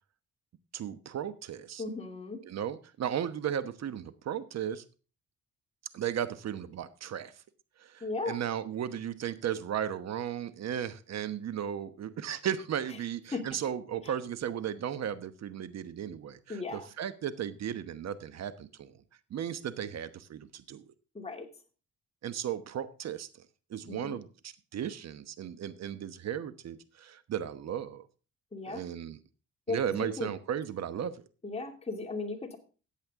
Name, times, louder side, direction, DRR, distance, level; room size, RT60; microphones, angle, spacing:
voice 1, 0.7-1.8 2.4-4.8 5.9-7.3 7.8-18.9 19.3-20.8 22.2-23.3 23.7-28.1 28.7-29.2 29.7-31.2, right 9 dB, 60° right, 13 dB, 1.1 m, -35 dB
voice 2, 1.8-2.4 8.0-8.4 13.3-13.6 14.0-14.1 16.5-16.9 21.1-21.5 23.9-24.2 28.5-28.8 29.7-30.3 31.4-32.6, left 3 dB, 20° left, 2 dB, 2.6 m, -36 dB
14.5 x 8.5 x 3.7 m, 0.36 s
cardioid pair, 90°, 30 cm